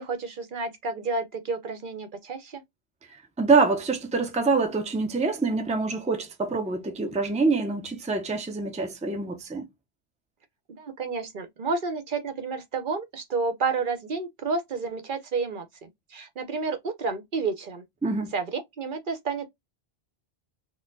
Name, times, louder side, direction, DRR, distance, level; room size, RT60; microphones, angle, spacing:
voice 1, 0.0-2.6 10.7-17.8 18.3-19.5, right 4 dB, 55° right, 0.8 m, -30 dB
voice 2, 3.4-9.7 18.0-18.3, right 4 dB, 10° right, 0.6 m, -25 dB
4.2 x 2.2 x 2.5 m
omnidirectional pair, 1.0 m